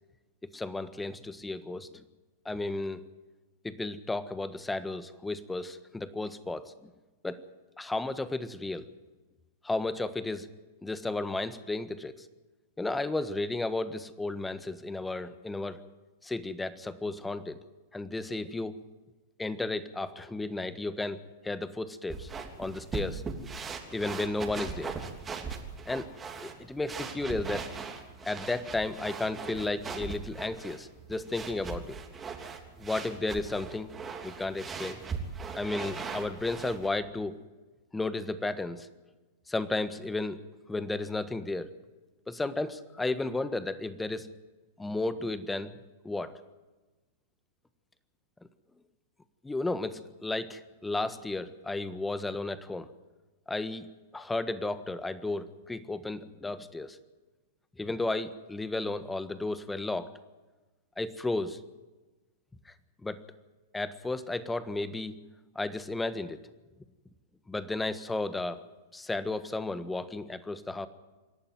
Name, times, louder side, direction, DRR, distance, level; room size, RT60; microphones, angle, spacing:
voice 1, 0.4-2.0 2.4-3.0 3.6-6.9 7.2-7.4 7.8-8.9 9.6-10.5 10.8-12.3 12.8-15.8 16.2-17.6 17.9-18.8 19.4-22.3 22.6-23.2 23.9-25.0 25.8-26.1 26.4-27.7 28.2-32.0 32.8-33.9 34.2-35.0 35.5-37.4 37.9-38.9 39.5-40.4 40.7-41.7 42.3-44.3 44.8-45.7 46.0-46.4 49.4-52.9 53.5-57.0 57.8-60.1 61.0-61.6 62.6-62.7 63.0-63.2 63.7-65.2 65.5-66.4 67.5-68.6 68.9-70.9, left 2 dB, 10° left, 13 dB, 1.4 m, -33 dB
sound 1, 22.1-36.9, right 5 dB, 20° right, 3.2 m, -40 dB
26.5 x 11.5 x 9.5 m, 1.2 s
hypercardioid pair, 105°, 0 cm